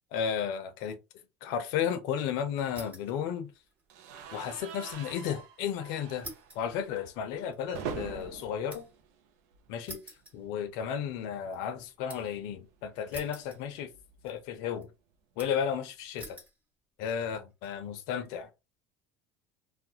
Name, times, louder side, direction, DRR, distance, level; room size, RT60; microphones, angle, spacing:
voice 1, 0.1-1.0 1.4-3.5 4.3-6.3 6.6-8.9 9.7-10.0 10.3-13.9 14.2-14.9 15.4-16.4 17.0-18.5, left 8 dB, 70° left, 0.5 m, -33 dB
sound 1, 2.7-3.2 3.5-5.1 5.4-5.5 6.2-9.1 9.9-11.0 11.4-12.4 13.1-14.0 14.3-14.9 15.4-15.7 16.2-16.6 17.2-17.7, right 1 dB, 20° right, 1.1 m, -49 dB
sound 2, 3.9-9.9 10.2-10.4 10.7-10.8 12.0-14.4, right 6 dB, 75° right, 0.5 m, -45 dB
2.4 x 2.1 x 2.7 m
supercardioid pair, 95°, 7 cm